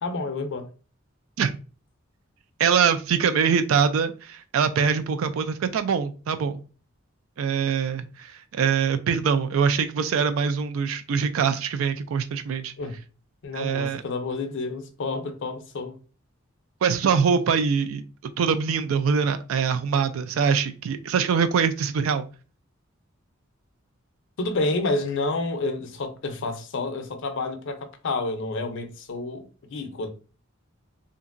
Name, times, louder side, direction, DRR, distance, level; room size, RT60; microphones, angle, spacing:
voice 1, 0.0-0.7 12.8-13.0 13.4-16.0 24.4-30.1, left 3 dB, 65° left, 0.5 m, -29 dB
voice 2, 2.6-6.6 7.4-12.7 13.5-14.0 16.8-18.0 18.4-22.3, right 6 dB, 70° right, 0.3 m, -23 dB
2.8 x 2.5 x 2.4 m
head